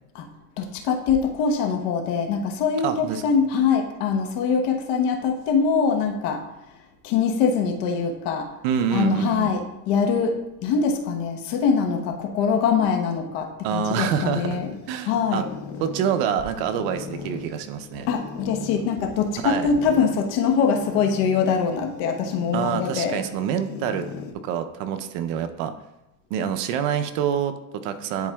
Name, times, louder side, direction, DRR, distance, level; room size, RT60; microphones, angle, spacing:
voice 1, 0.6-6.4 7.0-8.5 8.9-14.8 15.0-15.5 18.1-23.2, left 6 dB, 75° left, 4 dB, 1.1 m, -23 dB
voice 2, 2.8-3.2 8.6-9.5 13.6-14.6 14.9-15.4 15.8-18.1 19.4-19.7 22.5-24.0 24.4-25.7 26.3-28.3, right 8 dB, 75° right, 9 dB, 0.7 m, -26 dB
sound 1, 13.8-24.3, left 5 dB, 35° left, 0.6 m, -39 dB
10.5 x 4.3 x 2.3 m, 0.93 s
cardioid pair, 130°, 43 cm